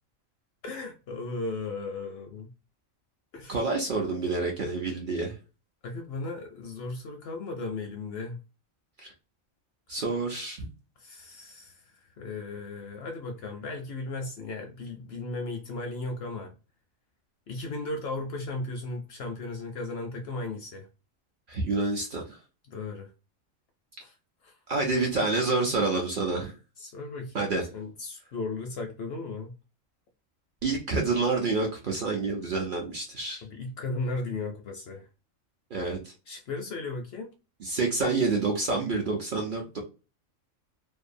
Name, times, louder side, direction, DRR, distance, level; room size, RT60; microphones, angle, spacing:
voice 1, 0.6-2.5 3.3-3.6 5.8-8.4 11.0-11.8 12.2-16.5 17.5-20.9 22.7-23.1 24.0-24.2 24.4-24.5 26.8-29.5 33.4-35.1 36.3-37.3, left 3 dB, 65° left, 0.6 m, -36 dB
voice 2, 3.5-5.3 9.0-9.1 9.9-10.7 21.5-22.4 24.7-26.5 27.3-27.6 30.6-33.4 35.7-36.1 37.6-39.8, right 3 dB, 55° right, 0.6 m, -28 dB
2.6 x 2.2 x 2.5 m
omnidirectional pair, 1.4 m